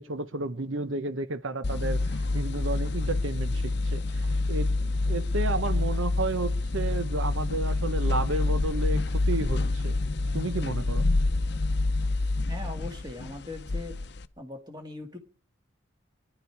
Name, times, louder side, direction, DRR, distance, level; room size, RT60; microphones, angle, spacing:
voice 1, 0.0-9.0 9.3-10.0 10.3-11.0, right 2 dB, 80° right, 1.0 m, -32 dB
sound 1, 1.6-14.3, left 2 dB, 55° left, 0.7 m, -27 dB
voice 2, 12.5-13.9 14.4-15.2, left 2 dB, 20° right, 2.4 m, -40 dB
23.5 x 11.5 x 4.7 m
head